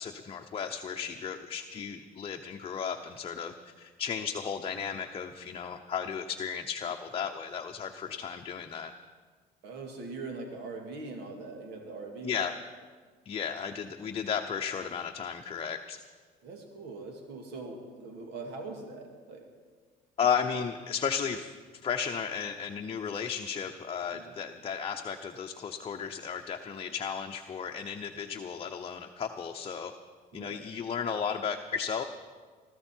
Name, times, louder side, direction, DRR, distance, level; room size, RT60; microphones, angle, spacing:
voice 1, 0.0-8.9 12.2-12.6 13.2-16.0 20.2-21.5 21.8-29.9 30.3-32.0, left 7 dB, 35° left, 3 dB, 0.8 m, -34 dB
voice 2, 9.6-12.5 16.4-19.5 20.4-20.6 24.1-24.3 30.3-30.6, right 3 dB, 85° right, 2 dB, 2.2 m, -42 dB
21.0 x 13.5 x 4.5 m, 1.5 s
cardioid pair, 110°, 17 cm